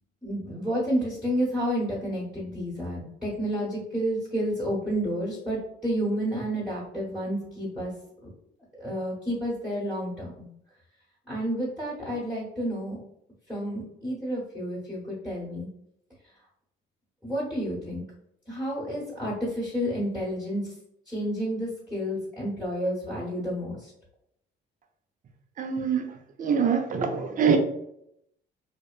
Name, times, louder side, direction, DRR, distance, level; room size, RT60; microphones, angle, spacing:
voice 1, 0.2-7.9 8.8-10.5 11.3-13.0 13.5-15.7 17.2-18.0 18.5-20.7 21.1-23.9, equal, 5° right, -8 dB, 1.1 m, -30 dB
voice 2, 25.6-26.1 26.4-27.6, right 6 dB, 40° right, 5 dB, 0.5 m, -24 dB
2.7 x 2.1 x 2.3 m, 0.76 s
cardioid pair, 90°, 20 cm